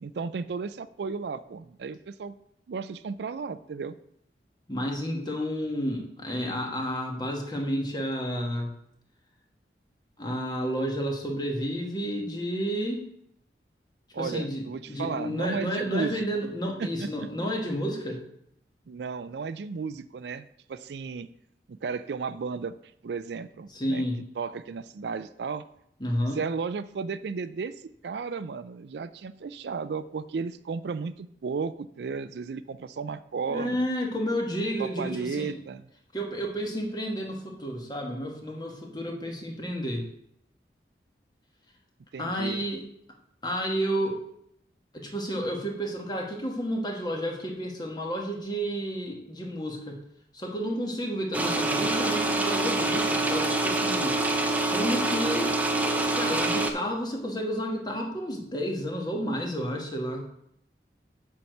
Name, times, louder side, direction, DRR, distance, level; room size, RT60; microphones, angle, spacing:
voice 1, 0.0-2.3 2.7-3.9 14.1-16.3 16.8-17.3 18.9-21.3 21.7-22.7 23.0-24.0 24.4-25.6 26.3-27.7 28.0-33.8 34.8-35.9 42.1-42.6, right 5 dB, 75° right, 14 dB, 0.4 m, -34 dB
voice 2, 4.7-8.7 10.2-13.0 14.2-18.2 23.7-24.2 26.0-26.4 33.5-35.6 36.1-40.0 42.2-42.8 43.4-44.2 44.9-50.0 50.3-54.2 54.7-60.2, equal, 25° left, 1 dB, 1.4 m, -31 dB
sound 1, 51.3-56.7, right 2 dB, 10° right, 0.6 m, -26 dB
7.0 x 4.7 x 6.5 m, 0.74 s
head